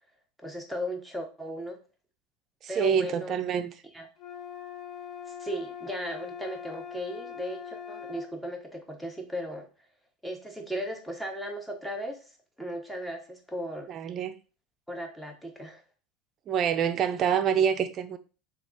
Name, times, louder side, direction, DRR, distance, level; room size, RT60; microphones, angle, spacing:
voice 1, 0.4-1.8 2.7-3.4 3.9-4.1 5.3-9.7 10.2-12.2 12.6-13.9 14.9-15.8, equal, 5° left, 0.8 m, -36 dB
voice 2, 2.6-3.7 13.9-14.3 16.5-18.2, right 8 dB, 40° right, 0.4 m, -26 dB
sound 1, 4.2-8.3, left 8 dB, 35° left, 0.8 m, -41 dB
3.3 x 2.4 x 3.9 m
supercardioid pair, 120°, 0 cm